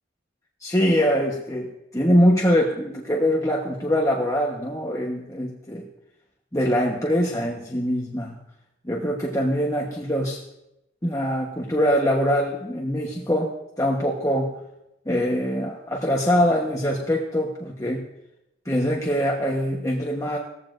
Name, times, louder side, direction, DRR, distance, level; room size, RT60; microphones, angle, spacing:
voice 1, 0.6-1.7 1.9-5.8 6.5-8.4 8.8-10.4 11.0-13.5 13.8-14.5 15.1-18.1 18.6-20.4, equal, 15° left, -2 dB, 1.2 m, -23 dB
18.5 x 15.0 x 2.6 m, 0.86 s
head